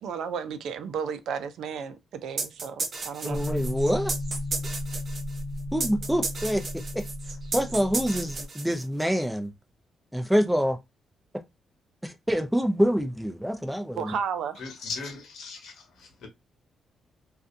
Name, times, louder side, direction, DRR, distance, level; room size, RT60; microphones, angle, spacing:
voice 1, 0.0-3.4 14.0-14.6, right 7 dB, 80° right, 0.4 m, -33 dB
sound 1, 2.4-9.1, right 4 dB, 55° right, 0.8 m, -34 dB
voice 2, 3.2-4.1 5.7-6.6 6.9-7.0 7.5-9.5 10.1-10.8 12.0-14.1, equal, 5° right, 0.6 m, -26 dB
sound 2, 3.3-8.4, left 1 dB, 55° left, 0.7 m, -34 dB
voice 3, 14.6-16.3, left 4 dB, 80° left, 0.9 m, -38 dB
2.5 x 2.3 x 2.6 m
supercardioid pair, 60°, 0 cm